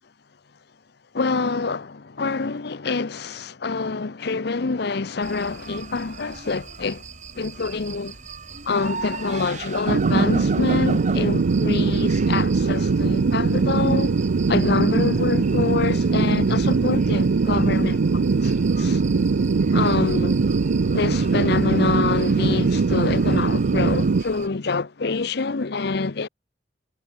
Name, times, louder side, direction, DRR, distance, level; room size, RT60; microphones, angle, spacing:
voice 1, 1.1-7.0 7.3-8.2 8.7-14.1 14.5-18.0 18.4-19.0 19.7-20.4 20.9-26.3, left 4 dB, 65° left, 0.8 m, -26 dB
sound 1, 5.2-24.5, right 5 dB, 45° right, 5.5 m, -39 dB
sound 2, 9.9-24.2, right 4 dB, 85° right, 0.5 m, -21 dB
head